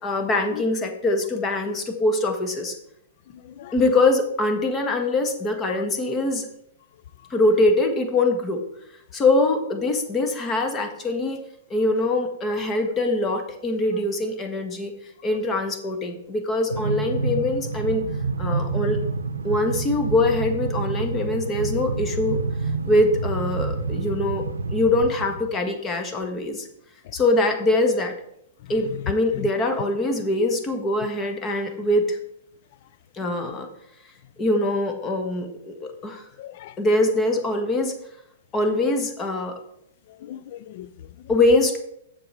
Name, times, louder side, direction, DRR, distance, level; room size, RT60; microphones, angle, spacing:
voice 1, 0.0-2.8 3.7-6.5 7.3-8.6 9.1-11.4 11.7-14.9 15.2-18.1 18.4-19.0 19.4-22.4 22.9-24.4 24.7-26.7 27.1-28.1 28.7-32.2 33.1-33.7 34.4-36.2 36.8-37.9 38.5-39.5 41.3-41.8, left 2 dB, 20° left, 1.6 m, -23 dB
voice 2, 3.3-3.7 5.7-5.8 27.0-27.1 28.6-29.5 36.4-36.8 40.1-41.7, left 11 dB, 50° left, 0.4 m, -36 dB
Train, 16.7-25.6, right 3 dB, 80° right, 0.6 m, -28 dB
7.3 x 6.9 x 4.7 m
hypercardioid pair, 110°, 0 cm